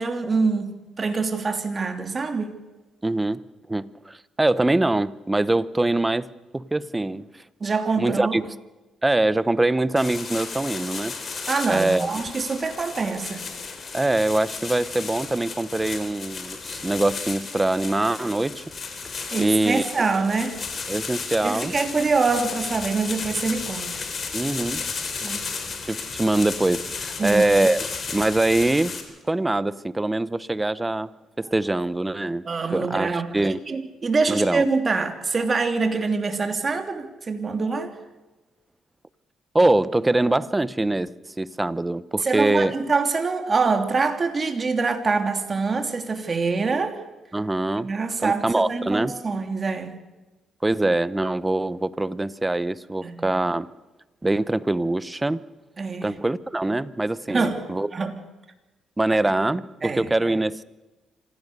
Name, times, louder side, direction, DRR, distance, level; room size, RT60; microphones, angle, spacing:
voice 1, 0.0-2.5 7.6-8.4 11.5-13.5 19.3-20.6 21.4-23.9 25.2-25.5 27.2-27.4 32.4-33.3 33.7-37.9 42.2-47.0 47.8-50.0 53.0-53.3 55.8-56.2 57.3-57.6 57.9-58.1 59.8-60.0, right 4 dB, 35° right, 6 dB, 2.9 m, -25 dB
voice 2, 3.0-3.4 3.7-7.4 8.0-8.5 9.0-11.2 11.7-12.1 13.9-18.6 19.4-19.8 20.9-21.7 24.3-24.8 25.8-27.9 28.1-28.9 29.2-33.6 34.3-34.7 39.5-42.8 47.3-47.9 48.2-49.2 50.6-53.7 54.2-55.5 56.0-57.9 59.0-60.6, right 2 dB, 15° right, 17 dB, 0.9 m, -23 dB
sound 1, 10.0-29.0, left 5 dB, 45° left, 3.8 m, -34 dB
26.0 x 16.0 x 6.8 m, 1.1 s
cardioid pair, 90°, 0 cm